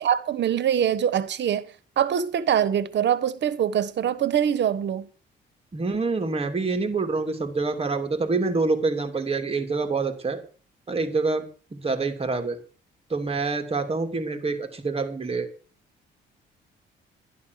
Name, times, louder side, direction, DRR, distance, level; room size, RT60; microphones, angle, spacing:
voice 1, 0.0-1.7 2.0-5.1, right 9 dB, 60° right, 1.3 m, -23 dB
voice 2, 5.7-10.4 10.9-11.4 11.7-12.6 13.1-15.5, right 3 dB, 30° right, 2.9 m, -26 dB
12.0 x 11.0 x 6.5 m
cardioid pair, 90°, 20 cm